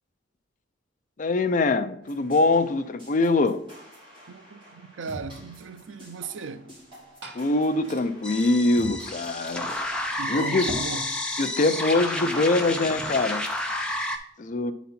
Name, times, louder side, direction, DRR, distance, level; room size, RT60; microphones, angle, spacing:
voice 1, 1.2-3.6 7.3-9.7 10.3-10.7 11.4-13.5 14.4-14.7, left 2 dB, 40° left, 0.5 m, -23 dB
sound 1, 2.0-10.8, right 1 dB, 25° right, 3.0 m, -48 dB
voice 2, 4.7-6.8 10.2-11.1, right 4 dB, 85° right, 0.5 m, -36 dB
Glass / Fill (with liquid), 6.7-13.8, right 1 dB, 60° right, 1.5 m, -46 dB
sound 2, 8.2-14.2, left 1 dB, 5° left, 0.7 m, -30 dB
9.2 x 4.1 x 4.3 m
head